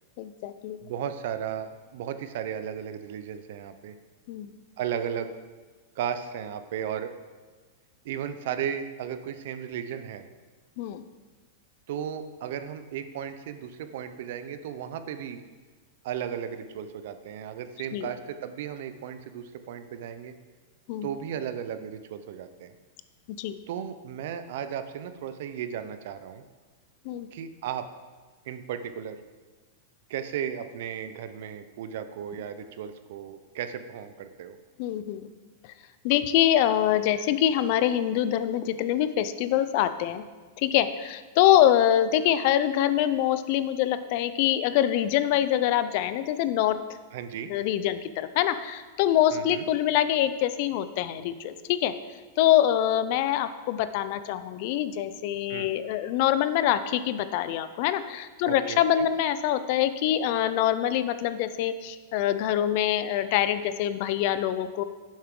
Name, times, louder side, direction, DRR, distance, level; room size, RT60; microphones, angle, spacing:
voice 1, 0.2-0.8 4.3-4.5 10.8-11.0 17.9-18.1 20.9-21.1 23.4-23.6 27.1-27.3 34.8-35.3 36.0-40.2 40.6-46.8 47.5-51.9 52.4-64.8, left 11 dB, 50° left, 13 dB, 0.5 m, -24 dB
voice 2, 0.8-3.9 4.8-5.3 6.0-7.1 8.0-10.2 11.9-15.4 16.0-20.3 21.0-22.7 23.7-26.4 27.3-27.9 28.5-29.2 30.1-34.6 47.1-47.5 49.3-49.6 55.5-55.7 58.4-59.1, right 9 dB, 60° right, 10 dB, 0.7 m, -35 dB
10.5 x 7.3 x 3.8 m, 1.4 s
supercardioid pair, 150°, 0 cm